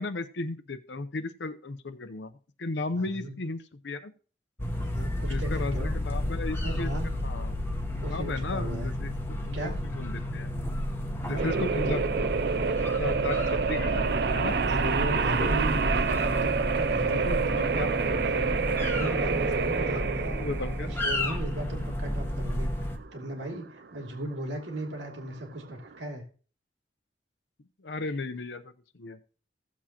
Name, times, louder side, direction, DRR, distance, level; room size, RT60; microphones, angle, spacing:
voice 1, 0.0-2.3 2.6-4.1 5.3-6.9 7.2-7.6 7.9-9.1 9.5-10.5 11.3-12.0 13.0-14.0 14.3-14.5 17.0-17.9 19.8-20.0 20.3-20.9 27.8-29.2, left 3 dB, 75° left, 10 dB, 0.7 m, -35 dB
voice 2, 3.0-3.3 4.8-5.9 6.6-7.2 8.0-8.9 9.5-9.9 11.3-11.5 14.7-18.4 18.9-20.4 20.8-22.7 23.1-26.2, right 1 dB, 90° right, 1 dB, 2.6 m, -36 dB
sound 1, 4.6-23.0, equal, 15° left, 1.0 m, -31 dB
sound 2, 11.4-25.9, right 5 dB, 60° right, 0.4 m, -28 dB
15.5 x 7.4 x 2.9 m, 0.39 s
head